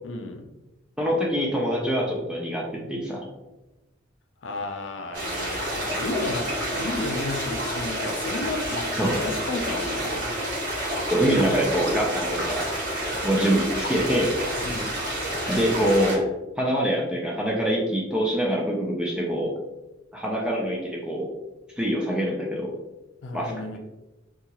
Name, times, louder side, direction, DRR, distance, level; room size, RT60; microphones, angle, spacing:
voice 1, 0.0-0.5 4.4-10.3 14.6-15.0 23.2-23.8, left 3 dB, 80° left, 5 dB, 0.4 m, -33 dB
voice 2, 1.0-3.3 9.0-9.2 11.1-12.7 13.2-14.4 15.5-16.3 16.6-19.5 20.1-21.3 21.8-22.7 23.3-23.8, equal, 5° right, -3 dB, 0.4 m, -25 dB
sound 1, 5.1-16.2, right 1 dB, 45° right, 1.1 m, -29 dB
2.8 x 2.3 x 2.8 m, 1.0 s
head